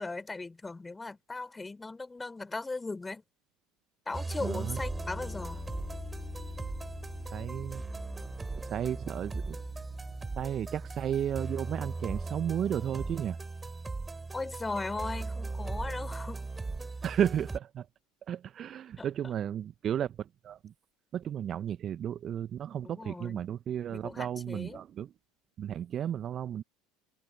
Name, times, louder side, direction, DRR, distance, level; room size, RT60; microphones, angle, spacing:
voice 1, 0.0-3.2 4.1-5.6 14.3-16.5 19.0-19.3 22.8-23.4 23.9-24.8, left 3 dB, 15° left, 4.6 m, -38 dB
sound 1, 4.1-17.6, right 3 dB, 15° right, 7.0 m, -38 dB
voice 2, 4.4-4.8 7.3-7.8 8.7-9.6 10.4-13.4 17.0-17.9 18.3-20.2 20.4-20.7 21.1-25.1 25.6-26.6, right 9 dB, 40° right, 1.1 m, -33 dB
sound 2, 4.6-13.4, left 6 dB, 30° left, 6.0 m, -48 dB
figure-of-eight pair, 70°, 0 cm